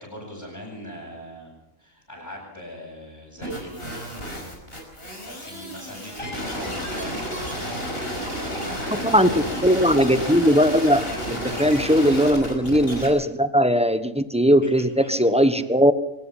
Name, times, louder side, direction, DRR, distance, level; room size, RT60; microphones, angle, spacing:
voice 1, 0.0-1.5 1.8-4.2 5.2-7.3 7.6-9.8 11.9-12.0 14.6-15.3 15.5-15.7, equal, 15° left, -6 dB, 7.6 m, -40 dB
sound 1, 3.4-13.1, equal, 45° left, 5.8 m, -31 dB
voice 2, 9.0-15.9, equal, 5° right, 11 dB, 1.1 m, -19 dB
23.5 x 19.5 x 5.8 m, 0.89 s
omnidirectional pair, 1.4 m